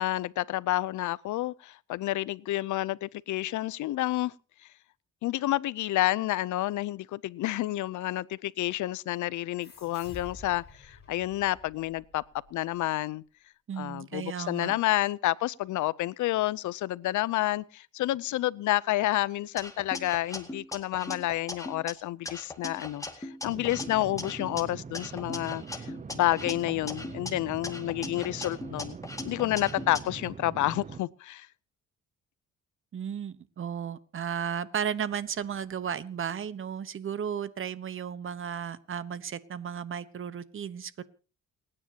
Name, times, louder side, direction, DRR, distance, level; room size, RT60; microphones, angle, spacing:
voice 1, 0.0-4.3 5.2-12.2 12.5-13.2 13.8-29.0 29.2-31.5, left 15 dB, 75° left, 0.6 m, -29 dB
sound 1, 9.6-12.8, left 3 dB, 35° left, 5.7 m, -50 dB
voice 2, 13.7-14.8 32.9-41.0, right 8 dB, 45° right, 1.1 m, -34 dB
sound 2, 19.6-21.9 22.3-24.6 24.9-27.3 27.6-30.0, left 2 dB, 10° left, 2.2 m, -39 dB
sound 3, 23.5-31.0, right 5 dB, 25° right, 0.6 m, -42 dB
29.0 x 9.9 x 2.9 m
cardioid pair, 90°, 30 cm